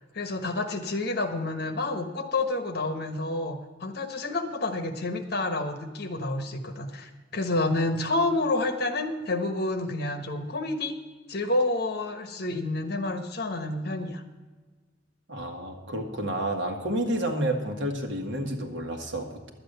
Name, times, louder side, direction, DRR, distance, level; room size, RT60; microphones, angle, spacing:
voice 1, 0.1-11.0 11.3-14.2, left 2 dB, 55° left, 7 dB, 1.2 m, -29 dB
voice 2, 15.3-19.5, right 1 dB, 70° right, 2 dB, 1.8 m, -30 dB
11.5 x 8.8 x 6.7 m, 1.3 s
head